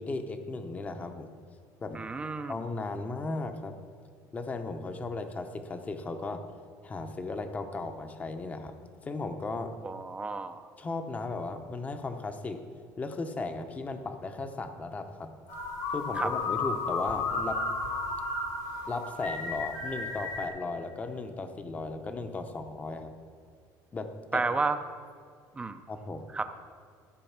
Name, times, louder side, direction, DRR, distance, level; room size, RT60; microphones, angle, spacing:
voice 1, 0.0-1.3 1.8-2.0 2.5-3.8 4.3-6.4 6.8-8.7 9.0-9.7 10.8-12.6 13.0-15.3 15.9-17.7 18.9-23.1 23.9-24.5 25.9-26.2, left 3 dB, 20° left, 7 dB, 0.7 m, -36 dB
voice 2, 1.9-2.5 9.8-10.6 16.2-16.3 24.3-24.8 25.6-25.8 26.3-26.5, right 4 dB, 15° right, 9 dB, 0.4 m, -31 dB
sound 1, 15.5-20.5, left 3 dB, 80° left, 3.0 m, -33 dB
13.5 x 5.2 x 7.2 m, 2.1 s
cardioid pair, 155°, 8 cm